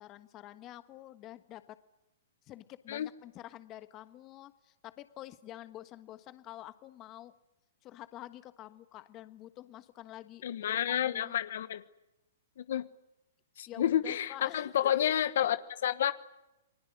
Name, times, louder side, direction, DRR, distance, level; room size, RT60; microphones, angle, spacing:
voice 1, 0.0-1.8 2.4-7.3 7.8-11.4 13.7-15.2, left 14 dB, 30° left, 11 dB, 1.4 m, -48 dB
voice 2, 10.4-11.8 12.6-12.9 13.6-16.1, left 10 dB, 65° left, 12 dB, 1.2 m, -30 dB
29.5 x 20.5 x 9.3 m, 0.97 s
hypercardioid pair, 145°, 0 cm